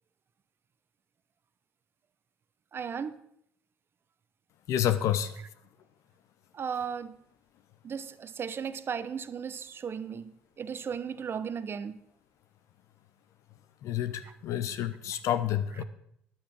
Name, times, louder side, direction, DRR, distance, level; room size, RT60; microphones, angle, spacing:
voice 1, 2.7-3.2 6.5-7.2 7.8-12.0 14.2-14.3, right 7 dB, 40° right, 0.8 m, -36 dB
voice 2, 4.7-5.4 13.8-15.8, left 10 dB, 60° left, 0.7 m, -29 dB
10.0 x 8.6 x 6.1 m
hypercardioid pair, 55°, 6 cm